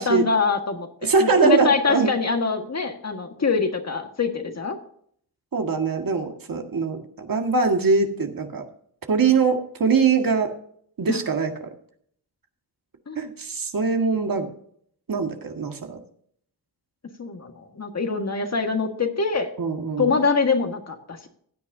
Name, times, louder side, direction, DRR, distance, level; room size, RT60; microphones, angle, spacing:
voice 1, 0.0-4.8 11.1-11.2 13.1-13.2 17.2-19.5 20.0-21.3, left 4 dB, 40° left, 5 dB, 1.7 m, -24 dB
voice 2, 1.0-2.1 5.5-8.6 9.1-10.5 11.0-11.5 13.2-14.5 15.1-16.0 19.6-20.2, right 4 dB, 60° right, 4 dB, 1.9 m, -22 dB
16.0 x 9.5 x 2.7 m, 0.63 s
wide cardioid pair, 90°, 39 cm